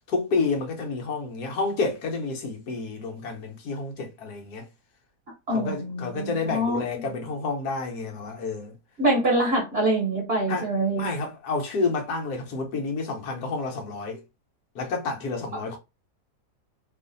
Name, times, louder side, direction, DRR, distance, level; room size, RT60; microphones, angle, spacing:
voice 1, 0.1-4.6 5.5-8.7 10.5-10.7 11.0-14.2 14.7-15.8, left 3 dB, 75° left, 1.4 m, -29 dB
voice 2, 5.5-6.8 9.0-11.1, right 1 dB, 45° right, 1.1 m, -24 dB
3.0 x 2.5 x 3.8 m
omnidirectional pair, 1.7 m